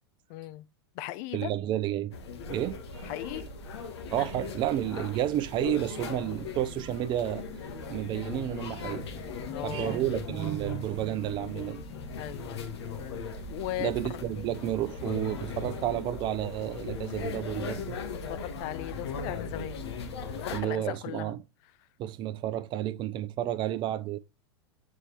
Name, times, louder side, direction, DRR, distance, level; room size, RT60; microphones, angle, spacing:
voice 1, 0.3-0.6 0.9-1.5 3.0-3.5 9.5-10.0 12.2-12.7 13.5-14.2 18.2-19.8 20.4-21.3, left 15 dB, 50° left, 0.5 m, -37 dB
voice 2, 1.3-2.1 2.5-3.1 4.1-7.5 7.9-11.8 13.8-18.0 20.5-21.4 22.0-24.2, right 12 dB, 35° right, 0.5 m, -31 dB
sound 1, 2.1-20.6, left 5 dB, 75° left, 1.4 m, -39 dB
Organ, 5.8-16.5, left 4 dB, 10° left, 0.7 m, -52 dB
7.3 x 4.3 x 3.3 m
hypercardioid pair, 105°, 14 cm